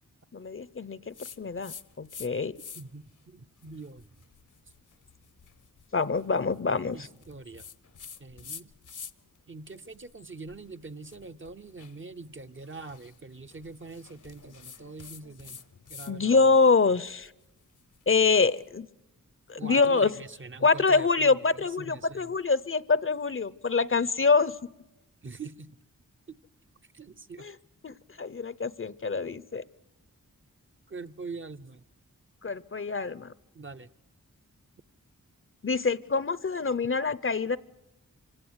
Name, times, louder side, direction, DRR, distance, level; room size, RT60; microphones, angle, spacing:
voice 1, 0.3-2.5 5.9-7.1 16.1-17.3 18.1-18.9 19.5-20.1 20.6-24.5 27.4-27.5 27.8-29.6 32.4-33.3 35.6-37.6, left 4 dB, 40° left, 19 dB, 0.7 m, -25 dB
sound 1, 1.1-2.3 2.5-3.1 3.6-9.4 9.7-16.1 16.4-18.6, left 6 dB, 65° left, 1.0 m, -48 dB
voice 2, 2.7-4.1 6.9-7.6 8.2-8.7 9.5-15.6 15.9-16.5 19.6-22.4 25.2-25.7 26.3-26.4 26.9-27.5 30.9-31.8 33.5-33.9, right 3 dB, 35° right, 8 dB, 0.8 m, -43 dB
25.5 x 17.0 x 8.1 m, 0.96 s
wide cardioid pair, 60°, 33 cm